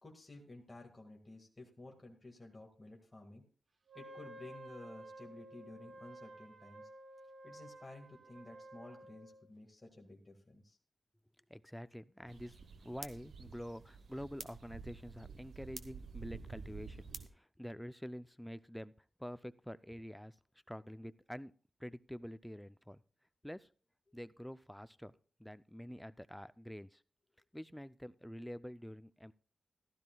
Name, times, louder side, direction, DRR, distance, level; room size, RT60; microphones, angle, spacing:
voice 1, 0.0-3.4 3.9-6.9 7.4-10.8, left 2 dB, 20° left, 0 dB, 1.8 m, -53 dB
Wind instrument woodwind instrument, 3.9-9.5, right 1 dB, 50° right, 0.9 m, -53 dB
voice 2, 11.5-18.9 19.2-20.3 20.7-21.5 21.8-23.0 23.4-23.7 24.1-25.1 25.4-27.0 27.5-29.3, equal, 5° left, 14 dB, 0.4 m, -47 dB
sound 1, 12.3-17.3, right 5 dB, 85° right, 1.0 m, -50 dB
15.5 x 12.5 x 2.3 m, 0.40 s
wide cardioid pair, 155°, 0 cm